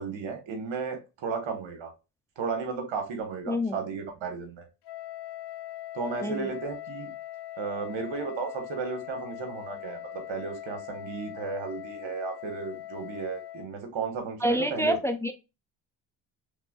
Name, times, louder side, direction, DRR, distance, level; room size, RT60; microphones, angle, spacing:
voice 1, 0.0-1.9 2.4-4.7 5.9-7.1 7.6-14.9, right 5 dB, 70° right, 1.6 m, -34 dB
voice 2, 3.5-3.8 6.2-6.4 14.4-15.3, equal, 5° left, 0.6 m, -27 dB
Wind instrument woodwind instrument, 4.8-13.7, left 14 dB, 60° left, 0.6 m, -41 dB
4.6 x 3.6 x 2.4 m
supercardioid pair, 60°, 47 cm